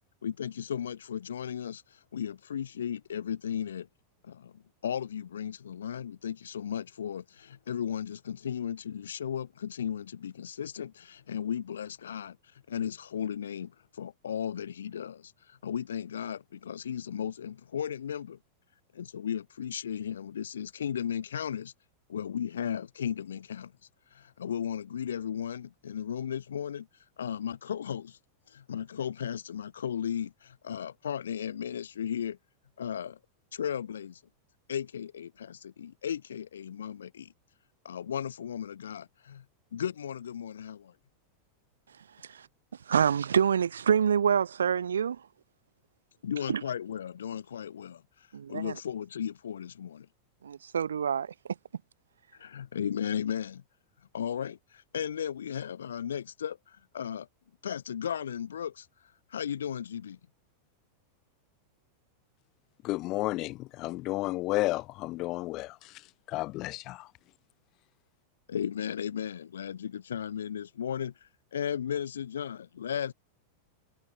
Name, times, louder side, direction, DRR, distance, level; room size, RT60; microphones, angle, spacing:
voice 1, 0.2-3.9 4.2-12.4 12.7-18.4 18.9-21.7 22.1-23.7 24.1-26.9 27.2-28.2 28.5-32.4 32.8-33.2 33.5-34.2 34.7-37.3 37.8-39.5 39.7-40.9 46.2-50.1 52.3-53.6 54.1-57.3 57.6-58.9 59.3-60.2 68.5-73.1, left 8 dB, 65° left, 0.7 m, -35 dB
voice 2, 42.9-45.2 46.5-46.6 48.3-48.7 50.4-51.3, right 7 dB, 70° right, 0.4 m, -26 dB
voice 3, 62.8-67.1, left 19 dB, 40° left, 0.9 m, -32 dB
figure-of-eight pair, 90°, 0 cm